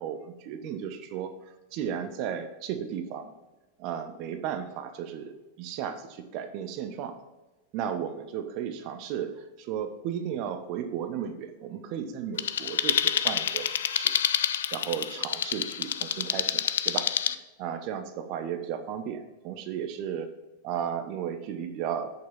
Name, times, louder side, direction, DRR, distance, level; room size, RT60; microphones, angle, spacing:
voice 1, 0.0-3.3 3.8-7.2 7.7-14.1 14.7-20.3 20.6-22.1, right 8 dB, 40° right, 8 dB, 1.0 m, -34 dB
sound 1, 12.4-17.3, left 9 dB, 60° left, 0.4 m, -28 dB
8.1 x 6.8 x 4.1 m, 1.1 s
figure-of-eight pair, 90°, 0 cm